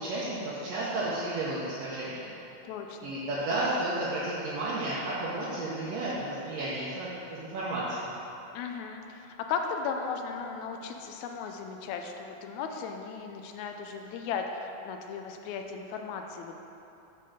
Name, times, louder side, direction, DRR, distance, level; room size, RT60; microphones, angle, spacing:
voice 1, 0.0-2.3 3.0-8.1, right 2 dB, 70° right, -8 dB, 1.9 m, -32 dB
voice 2, 2.7-3.1 8.5-16.6, left 6 dB, 80° left, 4 dB, 1.8 m, -36 dB
7.7 x 3.7 x 6.3 m, 2.9 s
omnidirectional pair, 3.3 m